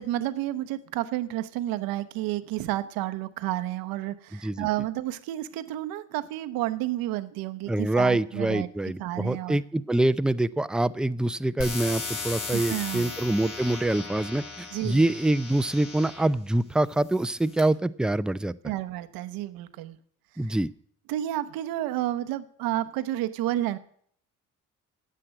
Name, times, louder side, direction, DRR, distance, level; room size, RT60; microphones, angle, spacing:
voice 1, 0.0-8.7 9.0-9.6 12.5-13.1 14.7-15.1 18.6-20.0 20.5-20.6 21.1-23.8, right 14 dB, 70° right, 11 dB, 0.9 m, -31 dB
voice 2, 7.7-18.5 20.4-20.7, right 1 dB, ahead, 15 dB, 0.5 m, -25 dB
sound 1, 11.6-16.3 17.0-17.6, left 4 dB, 60° left, 3.4 m, -37 dB
10.0 x 7.7 x 9.1 m, 0.62 s
hypercardioid pair, 55°, 36 cm